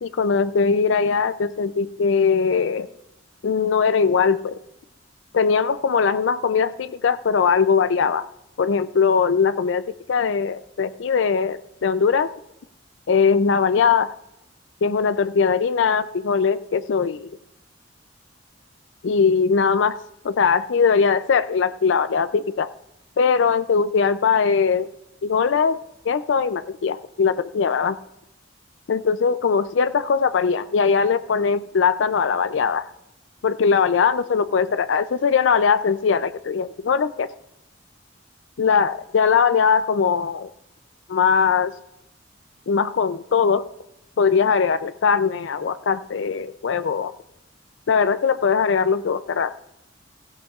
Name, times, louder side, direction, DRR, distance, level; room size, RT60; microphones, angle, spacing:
voice 1, 0.0-2.9 3.4-4.6 5.3-8.2 8.6-12.3 13.1-14.1 14.8-17.4 19.0-20.0 20.2-22.7 23.2-24.9 25.2-25.8 26.0-28.0 28.9-32.9 33.4-37.3 38.6-40.5 41.1-41.7 42.7-43.6 44.2-47.1 47.9-49.5, left 6 dB, 75° left, 14 dB, 0.4 m, -20 dB
16.5 x 15.5 x 2.4 m, 0.89 s
head